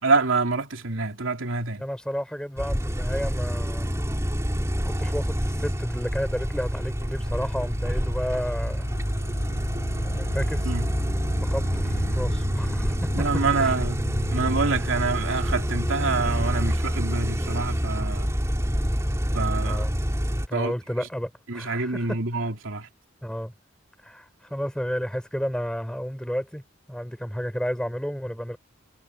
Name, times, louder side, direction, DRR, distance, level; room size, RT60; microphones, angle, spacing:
voice 1, 0.0-1.8 10.6-10.9 13.1-14.0 14.3-18.3 19.3-19.8 20.5-20.7 21.5-22.9, right 3 dB, 90° right, 2.9 m, -26 dB
voice 2, 1.8-3.9 4.8-8.9 10.0-10.7 11.4-13.7 19.6-20.0 20.5-22.2 23.2-23.5 24.0-26.6 26.9-28.6, equal, 5° left, 4.3 m, -32 dB
sound 1, 2.6-20.5, equal, 15° right, 3.2 m, -27 dB
sound 2, 5.5-16.4, equal, 85° left, 4.0 m, -36 dB
head